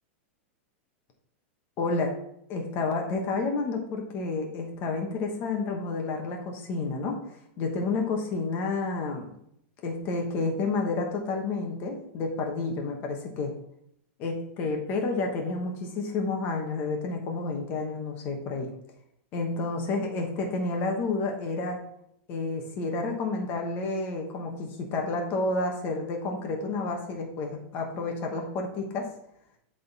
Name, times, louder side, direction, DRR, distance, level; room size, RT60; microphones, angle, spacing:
voice 1, 1.8-2.1 2.5-7.2 7.6-9.3 9.8-13.5 14.2-18.7 19.3-21.8 22.3-29.1, left 3 dB, 30° left, 2 dB, 1.0 m, -30 dB
9.3 x 3.6 x 4.0 m, 0.74 s
supercardioid pair, 170°, 7 cm